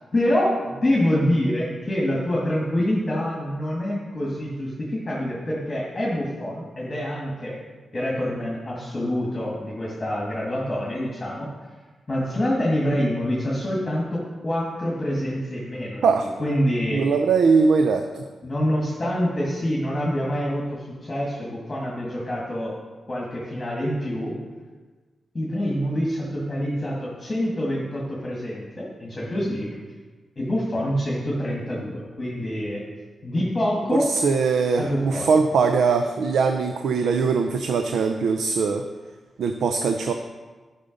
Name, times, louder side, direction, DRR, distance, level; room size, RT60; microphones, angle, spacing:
voice 1, 0.1-7.6 7.9-11.5 12.1-17.0 18.4-22.7 23.1-24.3 25.3-29.7 30.3-32.8 33.2-34.1 34.8-35.3, equal, 20° left, -5 dB, 1.7 m, -26 dB
voice 2, 16.9-18.2 33.9-38.9 39.4-40.1, right 5 dB, 90° right, 6 dB, 0.5 m, -21 dB
10.5 x 5.5 x 5.2 m, 1.3 s
wide cardioid pair, 155°, 0 cm